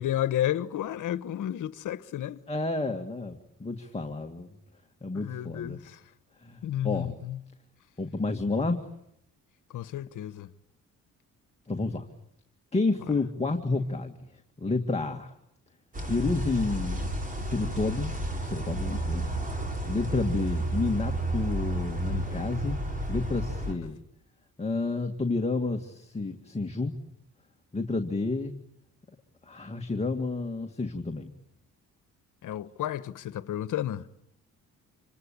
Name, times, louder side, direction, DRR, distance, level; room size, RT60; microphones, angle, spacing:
voice 1, 0.0-2.4 5.1-6.0 6.6-7.4 9.7-10.5 13.0-13.1 16.2-16.4 20.1-20.2 23.7-23.8 32.4-34.1, left 12 dB, 70° left, 1.3 m, -32 dB
voice 2, 2.5-4.5 5.0-5.8 6.4-7.1 8.0-8.8 11.7-12.1 12.7-14.1 14.6-15.3 16.1-18.1 18.4-19.3 19.9-22.8 23.1-24.0 24.6-27.0 27.7-28.5 29.4-31.3, left 3 dB, 20° left, 2.0 m, -30 dB
sound 1, 15.9-23.7, right 1 dB, 25° right, 6.0 m, -31 dB
27.5 x 25.0 x 8.6 m
cardioid pair, 95°, 32 cm